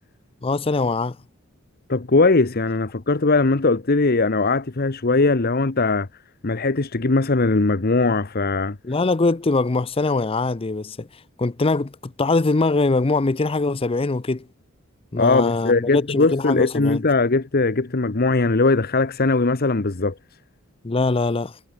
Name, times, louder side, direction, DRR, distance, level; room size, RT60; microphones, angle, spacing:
voice 1, 0.4-1.2 8.8-11.1 11.4-14.4 15.1-17.0 20.8-21.5, left 3 dB, 25° left, 0.6 m, -22 dB
voice 2, 1.9-6.1 6.4-8.8 15.2-20.1, left 3 dB, 45° left, 1.0 m, -20 dB
head